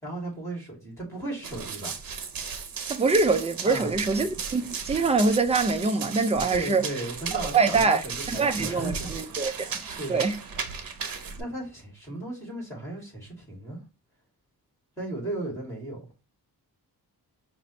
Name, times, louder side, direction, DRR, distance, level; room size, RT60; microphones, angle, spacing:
voice 1, 0.0-2.0 3.6-3.9 6.5-9.1 9.4-10.2 11.4-13.8 15.0-16.1, right 2 dB, 5° left, 2.4 m, -36 dB
Run, 1.4-11.4, right 6 dB, 60° right, 0.8 m, -36 dB
voice 2, 2.9-6.8 7.5-8.0 8.3-9.7 10.1-10.4, right 4 dB, 15° right, 0.4 m, -24 dB
5.1 x 2.6 x 3.1 m
wide cardioid pair, 150°, 40 cm